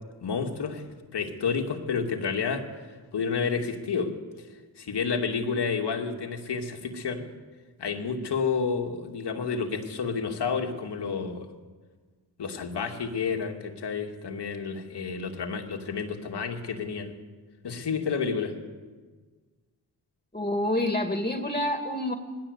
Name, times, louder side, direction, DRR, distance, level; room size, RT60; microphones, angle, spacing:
voice 1, 0.2-0.8 1.1-2.6 3.1-4.1 4.8-7.3 7.8-11.5 12.4-17.1 17.6-18.5, left 5 dB, 80° left, 3 dB, 2.5 m, -30 dB
voice 2, 20.3-22.1, left 1 dB, 20° left, 6 dB, 2.4 m, -27 dB
19.5 x 16.0 x 8.2 m, 1.4 s
cardioid pair, 50°, 40 cm